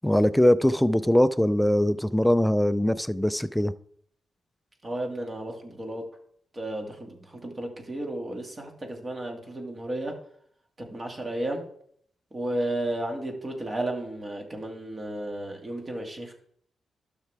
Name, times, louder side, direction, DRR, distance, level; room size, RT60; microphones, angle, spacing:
voice 1, 0.0-3.7, left 1 dB, 5° left, 13 dB, 0.4 m, -22 dB
voice 2, 4.8-6.0 6.5-10.1 10.8-11.6 12.3-16.3, right 1 dB, 30° right, 2 dB, 2.1 m, -33 dB
12.0 x 5.9 x 3.4 m, 0.65 s
cardioid pair, 80°, 0 cm